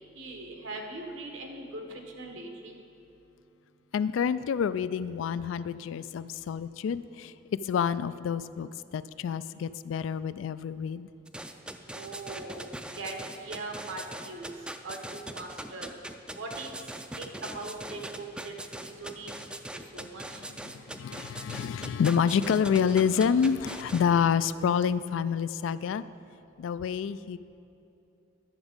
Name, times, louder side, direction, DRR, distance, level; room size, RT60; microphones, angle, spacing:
voice 1, 0.1-2.8 11.9-12.7 12.9-14.5 14.8-15.9 16.4-16.7 17.2-18.5 18.8-19.3 19.9-20.5, right 2 dB, 85° right, 3 dB, 1.2 m, -40 dB
voice 2, 3.9-7.3 7.6-11.1 20.6-26.0 26.6-27.4, left 7 dB, 80° left, 16 dB, 0.3 m, -28 dB
sound 1, 11.3-24.0, right 1 dB, 5° right, 0.3 m, -41 dB
10.5 x 7.1 x 5.1 m, 2.8 s
head